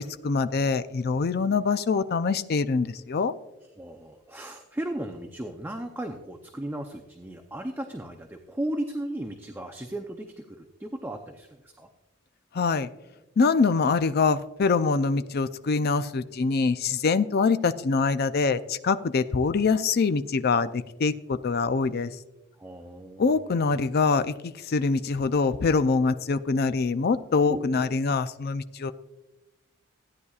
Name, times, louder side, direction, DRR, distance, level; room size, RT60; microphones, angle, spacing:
voice 1, 0.0-3.3 12.5-12.9 13.4-22.1 23.2-28.9, left 4 dB, 50° left, 11 dB, 0.4 m, -24 dB
voice 2, 3.8-11.9 22.6-23.5 27.5-27.6, right 1 dB, 10° right, 4 dB, 0.5 m, -35 dB
16.0 x 9.7 x 2.4 m, 1.0 s
head